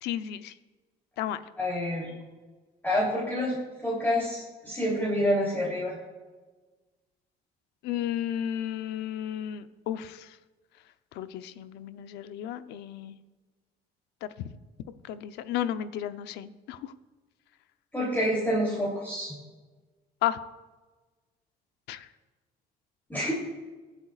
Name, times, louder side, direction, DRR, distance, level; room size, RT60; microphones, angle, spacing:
voice 1, 0.0-0.5 1.2-1.4 7.8-10.3 11.1-13.2 14.2-14.5 15.0-16.9 20.2-20.4 21.9-22.1, left 11 dB, 85° left, 11 dB, 0.7 m, -33 dB
voice 2, 1.6-2.1 2.8-6.0 17.9-19.4 23.1-23.3, equal, 10° left, -5 dB, 3.2 m, -28 dB
23.0 x 8.1 x 2.4 m, 1.3 s
cardioid pair, 110°, 17 cm